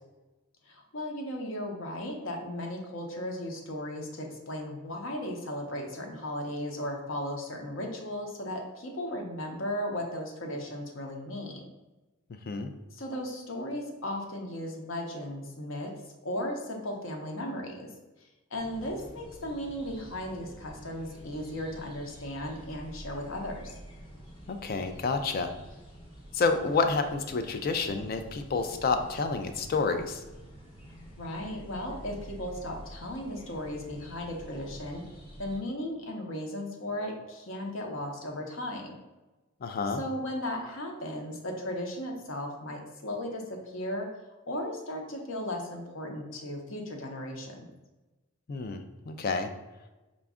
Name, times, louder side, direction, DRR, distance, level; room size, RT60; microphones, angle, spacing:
voice 1, 0.7-11.7 12.9-15.9 16.2-17.9 18.5-23.7 31.1-35.0 35.4-39.0 39.9-44.1 44.5-47.7, left 1 dB, 65° left, 2 dB, 0.7 m, -36 dB
sound 1, 18.6-35.6, right 1 dB, 25° left, 0.8 m, -48 dB
voice 2, 24.5-25.5 26.3-30.2 39.6-40.0 48.5-48.8 49.1-49.5, left 4 dB, 45° left, 7 dB, 0.3 m, -29 dB
5.0 x 2.3 x 3.5 m, 1.1 s
head